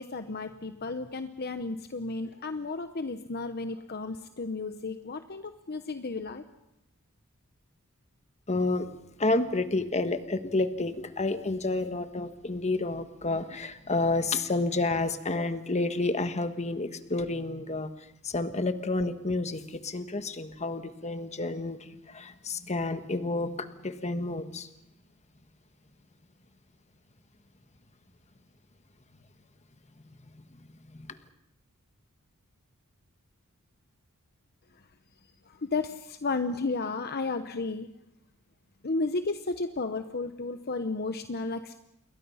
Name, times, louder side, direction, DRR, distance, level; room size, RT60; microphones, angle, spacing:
voice 1, 0.0-6.4 35.5-37.9 38.8-41.8, left 3 dB, 50° left, 9 dB, 0.9 m, -33 dB
voice 2, 8.5-8.9 9.2-24.7 30.3-30.4 30.9-31.2, left 2 dB, 30° left, 10 dB, 1.4 m, -30 dB
27.5 x 22.5 x 5.7 m, 0.86 s
head